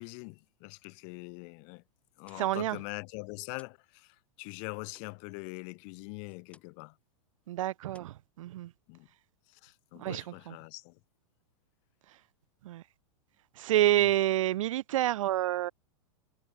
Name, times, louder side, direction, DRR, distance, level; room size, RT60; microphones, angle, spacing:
voice 1, 0.0-1.8 2.2-7.0 8.9-9.1 9.5-11.0 14.0-14.1, left 40 dB or more, 35° left, 2.1 m, -43 dB
sound 1, 2.0-3.9 4.2-6.9 7.2-7.5 7.9-9.0, left 4 dB, 5° left, 3.9 m, -64 dB
voice 2, 2.4-2.8 7.5-8.1 8.4-8.7 10.0-10.2 12.7-12.8 13.6-15.7, right 14 dB, 70° right, 0.5 m, -27 dB
supercardioid pair, 170°, 17 cm